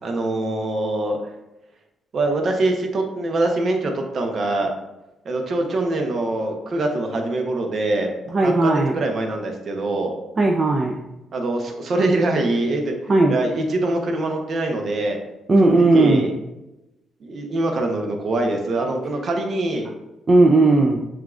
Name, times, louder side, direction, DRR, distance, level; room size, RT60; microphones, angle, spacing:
voice 1, 0.0-1.2 2.1-4.7 5.2-8.1 8.4-10.1 11.3-12.9 13.3-15.2 15.6-16.3 17.2-19.9, right 2 dB, 50° right, 3 dB, 0.8 m, -23 dB
voice 2, 8.3-8.9 10.4-10.9 13.1-13.4 15.5-16.3 20.3-21.0, right 2 dB, 35° right, 1 dB, 0.4 m, -16 dB
7.2 x 2.5 x 2.4 m, 0.95 s
cardioid pair, 90°, 0 cm